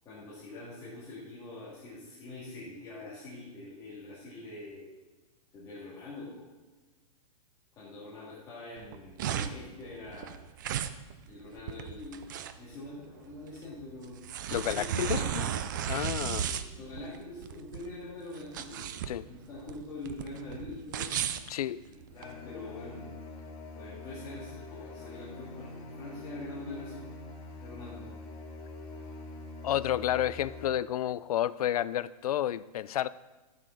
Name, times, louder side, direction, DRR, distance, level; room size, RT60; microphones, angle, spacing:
voice 1, 0.1-5.0 5.5-6.4 7.8-10.4 11.3-12.3 12.6-14.2 14.6-15.4 16.4-18.9 19.3-21.1 22.1-23.1 23.7-27.1 27.6-28.2, left 2 dB, 20° left, -10 dB, 2.2 m, -44 dB
sound 1, 8.8-22.3, right 9 dB, 30° right, 0.4 m, -35 dB
voice 2, 14.5-15.5 15.9-16.5 19.1-19.2 21.5-21.8 29.6-33.1, left 11 dB, 70° left, 18 dB, 0.4 m, -30 dB
sound 2, 22.1-30.7, left 2 dB, 40° left, 2.2 m, -45 dB
12.5 x 6.6 x 4.0 m, 1.2 s
hypercardioid pair, 170°, 20 cm